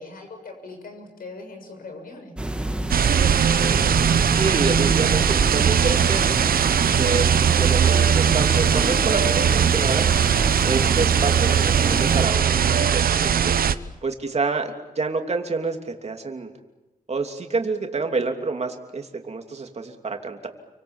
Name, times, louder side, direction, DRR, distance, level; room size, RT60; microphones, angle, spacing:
voice 1, 0.0-2.4 10.8-11.2, left 2 dB, 80° left, 4 dB, 6.9 m, -40 dB
sound 1, 2.4-12.3, right 1 dB, 5° right, 2.1 m, -30 dB
sound 2, 2.9-13.7, right 8 dB, 85° right, 0.9 m, -19 dB
voice 2, 4.3-6.3 7.0-7.3 7.6-10.1 10.6-13.5 14.0-16.5 17.1-20.5, right 4 dB, 45° right, 4 dB, 3.0 m, -28 dB
29.5 x 24.5 x 7.4 m, 1.0 s
wide cardioid pair, 105°, 15 cm